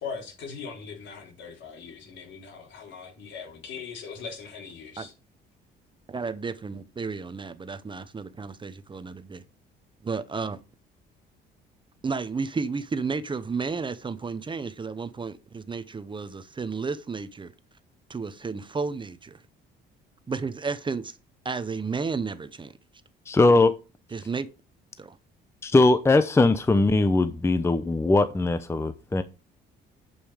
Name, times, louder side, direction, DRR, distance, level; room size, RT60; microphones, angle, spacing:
voice 1, 0.0-5.1, left 5 dB, 70° left, 3.7 m, -40 dB
voice 2, 6.1-9.4 10.0-10.6 12.0-17.5 18.1-19.4 20.3-21.2 21.4-22.7 24.1-24.5 25.0-25.2, right 4 dB, 25° right, 0.8 m, -32 dB
voice 3, 23.3-23.7 25.6-29.2, left 2 dB, 15° left, 0.7 m, -20 dB
10.5 x 5.6 x 5.0 m
cardioid pair, 100°, 20 cm